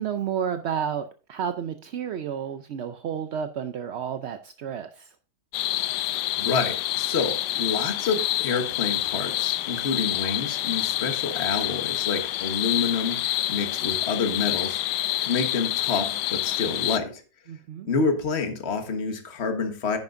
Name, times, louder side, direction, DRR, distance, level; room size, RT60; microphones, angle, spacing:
voice 1, 0.0-5.1 17.5-17.9, right 8 dB, 65° right, 9 dB, 0.6 m, -31 dB
sound 1, 5.5-17.0, left 14 dB, 80° left, 1.1 m, -27 dB
voice 2, 6.4-14.8 15.2-17.2 17.8-20.0, left 5 dB, 40° left, 6 dB, 1.6 m, -28 dB
10.5 x 9.3 x 2.6 m, 0.36 s
omnidirectional pair, 1.8 m